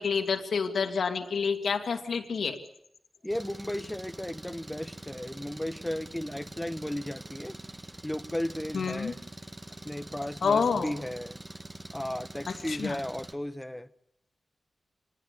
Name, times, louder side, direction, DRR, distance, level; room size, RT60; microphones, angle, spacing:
voice 1, 0.0-2.6 8.7-9.1 10.4-10.9 12.5-13.0, left 5 dB, 80° left, 2.3 m, -28 dB
voice 2, 3.2-7.6 8.0-9.2 9.8-11.4 11.9-13.9, left 1 dB, 10° left, 1.0 m, -35 dB
Engine, 3.3-13.3, right 2 dB, 25° right, 2.1 m, -45 dB
25.5 x 19.0 x 8.3 m
cardioid pair, 65°, 0 cm